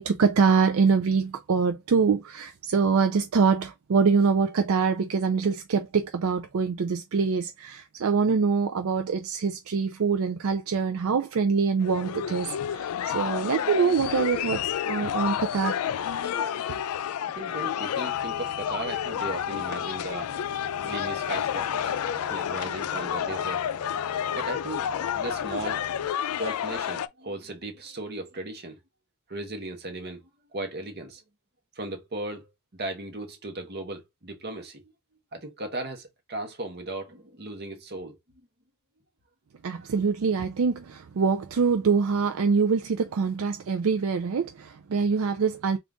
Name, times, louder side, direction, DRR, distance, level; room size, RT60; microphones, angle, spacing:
voice 1, 0.0-15.8 16.7-16.8 39.6-45.8, right 5 dB, 65° right, 0.4 m, -24 dB
sound 1, 11.8-27.1, left 9 dB, 75° left, 0.3 m, -30 dB
voice 2, 17.3-20.3 20.8-21.9 22.2-23.6 24.3-25.8 26.3-28.8 29.3-31.2 31.7-34.9 35.3-38.2 39.8-39.9, right 2 dB, 50° right, 1.0 m, -36 dB
sound 2, 18.1-26.1, right 1 dB, 80° right, 0.9 m, -48 dB
3.8 x 2.4 x 3.5 m
head